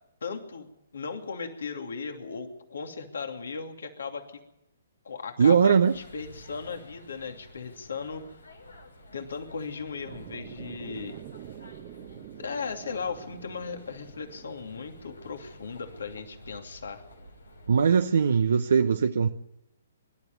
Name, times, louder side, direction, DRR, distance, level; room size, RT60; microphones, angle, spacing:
voice 1, 0.2-4.4 5.0-8.2 9.1-11.1 12.4-17.0, left 5 dB, 70° left, 5 dB, 2.8 m, -37 dB
voice 2, 5.4-6.0 17.7-19.3, right 6 dB, 65° right, 7 dB, 0.9 m, -21 dB
sound 1, 5.8-18.0, left 1 dB, 90° left, 4.3 m, -51 dB
sound 2, 10.0-16.1, right 12 dB, 40° right, 1.2 m, -47 dB
24.0 x 12.0 x 9.4 m, 0.86 s
figure-of-eight pair, 125°, 0 cm